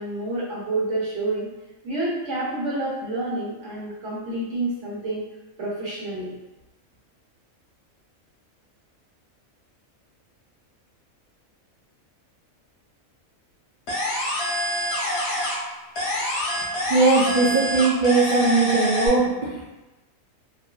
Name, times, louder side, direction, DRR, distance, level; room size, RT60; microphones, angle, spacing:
voice 1, 0.0-1.5 1.8-5.2 5.6-6.3, right 2 dB, 60° right, -8 dB, 1.3 m, -28 dB
sound 1, 13.9-15.7 15.9-19.1, left 1 dB, 60° left, 0.8 m, -26 dB
voice 2, 16.9-19.8, right 3 dB, 75° right, -9 dB, 0.4 m, -20 dB
2.5 x 2.4 x 2.2 m, 1.1 s
omnidirectional pair, 1.4 m